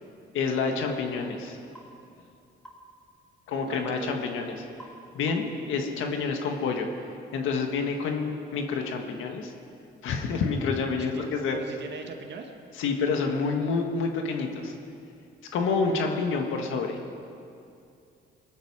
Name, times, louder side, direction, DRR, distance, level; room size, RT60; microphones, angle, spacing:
voice 1, 0.3-1.6 3.5-4.5 5.1-6.9 7.3-9.5 10.0-11.6 12.8-14.7 15.5-17.0, left 4 dB, 85° left, 3 dB, 1.7 m, -28 dB
sound 1, 1.7-1.9 2.6-2.9 4.8-5.0 5.3-5.6, equal, 5° left, 4.1 m, -48 dB
voice 2, 3.6-4.2 11.0-11.3 11.5-12.5, right 5 dB, 60° right, 3 dB, 1.8 m, -39 dB
21.0 x 13.0 x 4.9 m, 2.5 s
cardioid pair, 90°, 20 cm